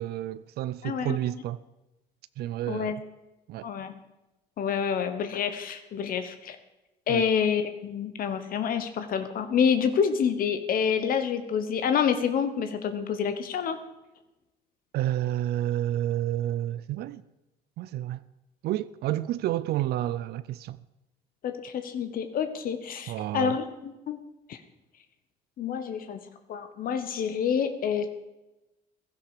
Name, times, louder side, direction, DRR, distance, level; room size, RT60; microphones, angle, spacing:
voice 1, 0.0-1.6 2.4-2.9 3.5-3.7 7.1-7.3 14.9-17.2 17.8-18.2 18.6-20.8 23.1-23.6, right 13 dB, 70° right, 0.5 m, -30 dB
voice 2, 0.8-1.2 2.7-3.0 3.6-3.9 4.6-6.6 7.1-13.8 21.4-24.2 24.5-24.6 25.6-26.2 26.5-28.1, left 7 dB, 60° left, 1.1 m, -28 dB
16.0 x 12.5 x 4.9 m
cardioid pair, 110°, 17 cm